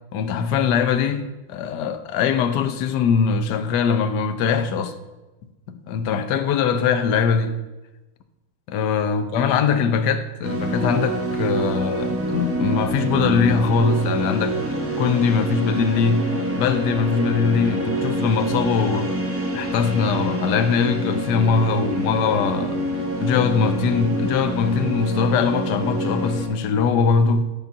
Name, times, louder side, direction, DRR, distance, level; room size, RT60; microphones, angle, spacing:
voice 1, 0.1-4.9 5.7-7.5 8.7-16.3 16.5-19.3 19.5-22.8 23.2-27.4, left 6 dB, 65° left, 1.2 m, -21 dB
sound 1, 10.4-26.5, right 1 dB, 10° right, 0.9 m, -26 dB
10.0 x 4.0 x 7.0 m
omnidirectional pair, 2.3 m